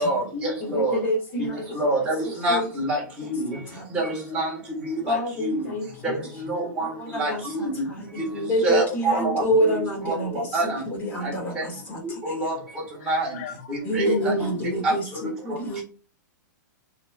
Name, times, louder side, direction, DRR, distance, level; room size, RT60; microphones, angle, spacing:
voice 1, 0.0-0.9 1.8-2.6 2.9-3.4 3.9-4.5 4.8-5.2 5.4-5.6 6.4-6.9 7.2-7.7 8.6-10.1 10.5-10.6 12.2-12.5 13.1-13.3 13.9-14.1 14.8-14.9, right 2 dB, 10° right, 1.7 m, -25 dB
voice 2, 0.6-1.7 2.2-2.7 3.7-4.1 5.0-6.3 6.8-12.4 13.8-15.8, equal, 20° left, 1.8 m, -28 dB
voice 3, 13.0-14.9, left 10 dB, 45° left, 0.6 m, -37 dB
7.1 x 3.1 x 2.4 m
hypercardioid pair, 155°, 10 cm